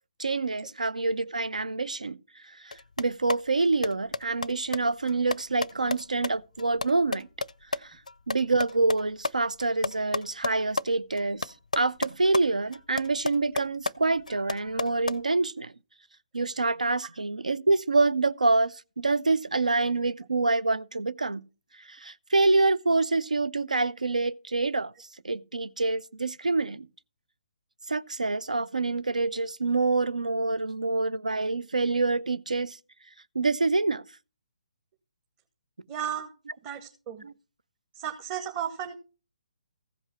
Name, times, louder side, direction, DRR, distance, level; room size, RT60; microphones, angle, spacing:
voice 1, 0.2-2.2 2.6-7.3 7.8-8.0 8.3-15.7 16.3-21.4 21.9-24.9 25.2-26.9 27.9-32.8 33.3-34.0 37.2-37.3, right 3 dB, 85° right, 0.6 m, -26 dB
sound 1, 2.7-7.8 8.1-10.8 11.2-12.4 12.7-15.2, left 3 dB, 85° left, 0.4 m, -32 dB
voice 2, 35.9-36.3 36.6-37.2 37.9-38.9, right 9 dB, 25° right, 1.3 m, -34 dB
15.5 x 5.4 x 5.9 m
figure-of-eight pair, 140°, 4 cm